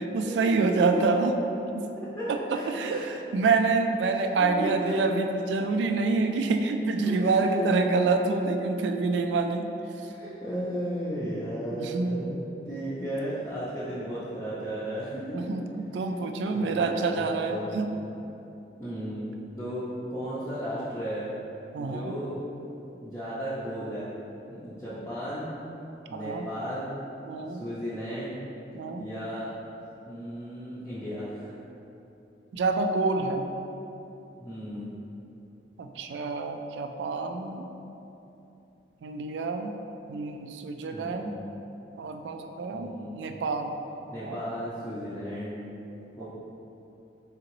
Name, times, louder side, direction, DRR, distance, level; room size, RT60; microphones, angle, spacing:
voice 1, 0.1-1.4 1.7-1.9 2.3-9.7 11.8-12.3 15.3-15.6 15.9-17.9 21.7-22.2 26.1-26.5 27.3-27.7 28.7-29.1 32.5-33.4 35.8-37.7 39.0-39.7 40.1-41.3 42.0-43.7 44.2-44.4 46.2-46.3, right 3 dB, 85° right, 5 dB, 0.3 m, -27 dB
voice 2, 2.0-3.1 4.0-5.0 7.0-7.7 10.1-15.5 16.5-18.1 18.8-19.3 19.5-21.3 21.8-22.4 23.0-24.1 24.5-25.5 26.1-26.9 27.5-28.4 29.0-29.5 30.1-31.5 34.4-34.9 40.9-41.4 42.7-43.2 44.1-45.7 46.2-46.3, equal, 15° left, -12 dB, 0.5 m, -35 dB
3.9 x 3.7 x 3.0 m, 2.9 s
head